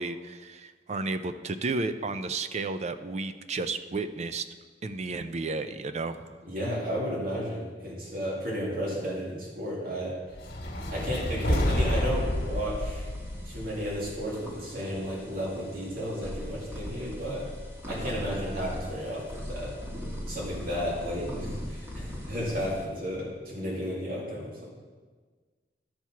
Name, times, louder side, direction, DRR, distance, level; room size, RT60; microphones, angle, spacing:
voice 1, 0.0-4.4 4.8-6.3, right 3 dB, 40° right, 10 dB, 0.4 m, -32 dB
voice 2, 6.5-10.2 10.9-13.1 13.5-17.5 17.9-19.8 20.3-24.7, equal, 55° right, -5 dB, 2.4 m, -33 dB
sound 1, 10.3-14.6, left 1 dB, 60° left, 1.7 m, -29 dB
sound 2, 11.5-22.9, equal, 15° right, 1.5 m, -40 dB
12.0 x 4.6 x 5.7 m, 1.4 s
head